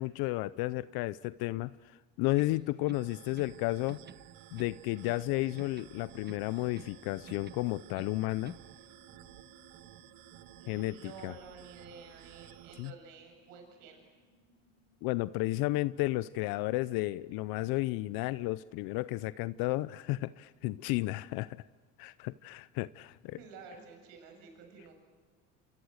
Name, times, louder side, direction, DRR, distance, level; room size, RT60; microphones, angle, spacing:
voice 1, 0.0-4.0 4.5-8.6 10.7-11.3 12.8-12.9 15.0-21.6 22.0-23.4, left 19 dB, 65° left, 17 dB, 0.7 m, -33 dB
sound 1, 2.3-3.6 3.9-5.3 5.6-7.0 7.3-8.7, right 6 dB, 25° right, 1.0 m, -53 dB
sound 2, 2.9-12.9, right 13 dB, 60° right, 1.2 m, -54 dB
sound 3, 5.2-21.2, left 3 dB, 45° left, 5.0 m, -66 dB
voice 2, 10.6-14.0 23.3-24.9, right 4 dB, 85° right, 4 dB, 7.5 m, -51 dB
28.0 x 27.5 x 6.5 m, 1.5 s
hypercardioid pair, 80°, 38 cm